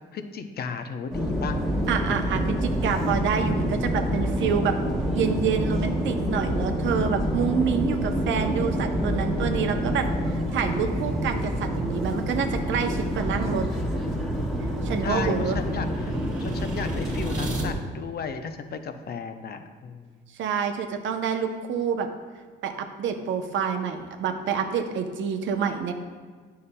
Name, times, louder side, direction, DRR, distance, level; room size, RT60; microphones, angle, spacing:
voice 1, 0.1-1.6 15.0-16.1 16.4-20.1, left 5 dB, 55° left, 7 dB, 0.6 m, -34 dB
sound 1, 1.1-17.7, equal, ahead, 1.2 m, -27 dB
voice 2, 1.9-4.8 5.1-10.1 10.5-13.6 14.8-15.6 20.4-22.1 22.6-25.9, right 7 dB, 70° right, 6 dB, 0.6 m, -27 dB
sound 2, 14.5-17.7, right 2 dB, 20° right, 1.7 m, -44 dB
9.5 x 5.6 x 2.2 m, 1.5 s
cardioid pair, 90°, 20 cm